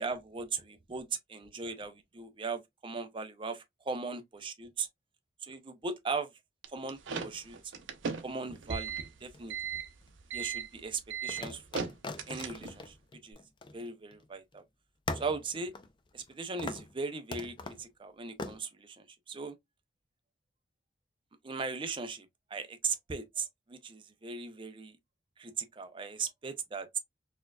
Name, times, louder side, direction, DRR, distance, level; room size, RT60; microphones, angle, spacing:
voice 1, 0.0-3.5 3.9-4.9 5.4-6.3 6.7-7.6 8.2-9.6 10.3-11.9 12.3-12.9 13.2-13.4 13.7-14.6 15.1-15.7 16.1-19.5 21.4-22.3 22.5-25.0 25.4-27.0, right 4 dB, 25° right, 0.5 m, -38 dB
sound 1, 6.6-12.9, right 6 dB, 75° right, 0.5 m, -38 dB
sound 2, 9.2-10.1 11.3-14.2 14.5-14.6 15.1-16.3 16.6-16.9 17.3-17.8 18.4-18.6, left 3 dB, 25° left, 0.4 m, -41 dB
4.3 x 2.3 x 2.2 m
head